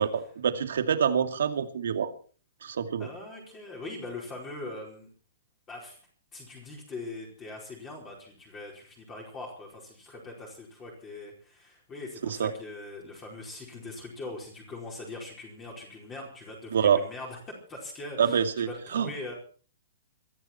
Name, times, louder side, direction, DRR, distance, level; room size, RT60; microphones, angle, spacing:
voice 1, 0.0-2.1 2.6-3.1 12.2-12.5 16.7-17.0 18.2-19.1, right 7 dB, 80° right, 8 dB, 2.4 m, -26 dB
voice 2, 3.0-5.1 5.7-6.0 6.3-19.3, left 2 dB, 15° left, -1 dB, 4.6 m, -42 dB
22.5 x 13.5 x 4.5 m, 0.41 s
hypercardioid pair, 175°, 0 cm